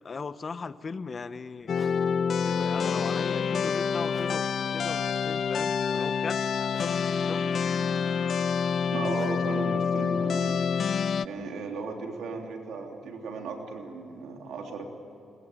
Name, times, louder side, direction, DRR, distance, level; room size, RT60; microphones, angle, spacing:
voice 1, 0.0-1.8 2.4-6.5 6.8-7.8, left 4 dB, 45° left, 14 dB, 1.0 m, -38 dB
sound 1, 1.6-11.5, equal, 5° left, 3.5 m, -53 dB
sound 2, 1.7-11.3, left 6 dB, 60° left, 0.5 m, -27 dB
sound 3, 7.1-11.8, right 3 dB, 45° right, 4.2 m, -51 dB
voice 2, 8.9-10.7 11.2-14.9, right 4 dB, 80° right, 2 dB, 3.3 m, -36 dB
22.0 x 20.5 x 9.2 m, 2.7 s
cardioid pair, 75°, 0 cm